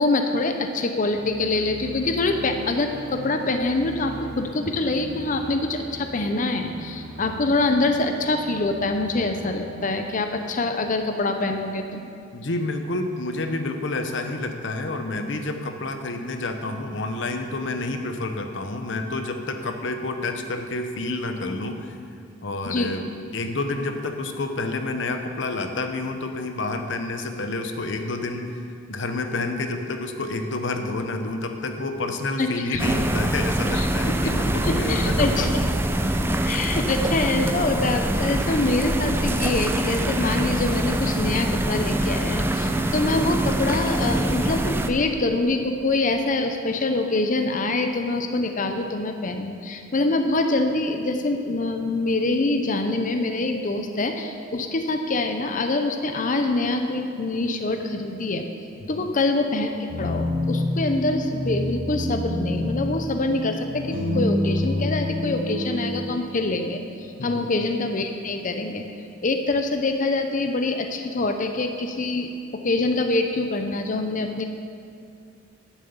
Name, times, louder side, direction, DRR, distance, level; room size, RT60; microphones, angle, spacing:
voice 1, 0.0-12.0 22.6-22.9 32.4-32.8 33.7-33.9 34.2-34.3 34.6-35.5 36.4-58.5 58.9-68.9 69.2-74.4, left 2 dB, 45° left, 5 dB, 0.7 m, -25 dB
sound 1, 1.1-11.1, right 2 dB, 60° right, 0.7 m, -40 dB
voice 2, 12.3-22.0 22.4-28.6 28.9-35.5 36.2-36.3 58.8-59.1 67.2-67.5, left 2 dB, 70° left, 6 dB, 0.9 m, -29 dB
sound 2, 32.8-44.9, right 1 dB, 10° right, 0.5 m, -24 dB
sound 3, 59.9-65.8, left 1 dB, 45° right, 2.3 m, -26 dB
10.5 x 7.3 x 7.2 m, 2.4 s
head